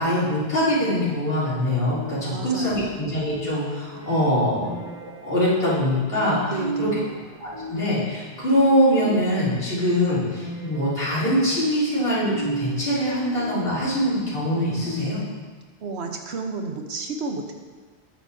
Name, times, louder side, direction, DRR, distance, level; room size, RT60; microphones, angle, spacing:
voice 1, 0.0-4.7 5.0-6.5 6.8-6.9 7.4-15.2, equal, 65° left, -10 dB, 3.4 m, -23 dB
sound 1, 1.8-15.4, right 2 dB, 35° right, 2.0 m, -37 dB
voice 2, 2.3-2.9 6.5-7.1 15.8-17.5, right 4 dB, 75° right, 4 dB, 1.2 m, -31 dB
10.0 x 9.3 x 2.7 m, 1.4 s
omnidirectional pair, 1.1 m